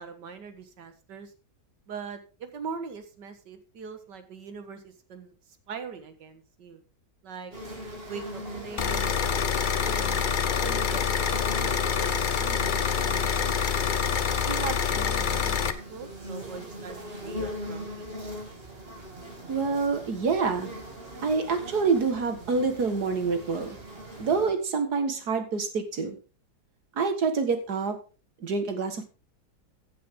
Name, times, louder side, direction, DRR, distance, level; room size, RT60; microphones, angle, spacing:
voice 1, 0.0-1.3 1.9-5.3 5.7-6.8 7.2-7.5 8.1-9.6 9.9-10.2 10.6-13.9 14.4-18.1, right 5 dB, 80° right, 9 dB, 2.0 m, -41 dB
sound 1, 7.5-24.5, equal, 35° right, 2.7 m, -41 dB
sound 2, 8.8-15.7, left 7 dB, 45° left, 0.6 m, -26 dB
voice 2, 19.5-20.7 21.2-23.8 24.2-26.2 27.0-28.0 28.4-29.0, right 4 dB, 65° right, 7 dB, 2.2 m, -27 dB
15.0 x 7.7 x 3.7 m, 0.34 s
omnidirectional pair, 1.9 m